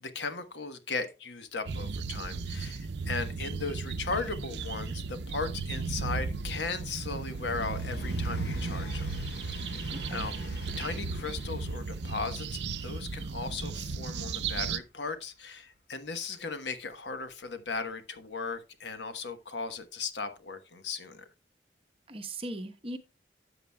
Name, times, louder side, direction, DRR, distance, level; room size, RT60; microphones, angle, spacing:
voice 1, 0.0-9.1 9.5-10.3 10.8-21.3, left 4 dB, 90° left, 1.1 m, -37 dB
sound 1, 1.7-14.8, right 4 dB, 80° right, 0.6 m, -35 dB
Train, 1.9-18.5 19.5-19.6, left 2 dB, 70° left, 1.1 m, -52 dB
voice 2, 9.9-10.3 22.1-23.0, right 1 dB, 30° right, 1.0 m, -39 dB
12.5 x 8.0 x 2.3 m
head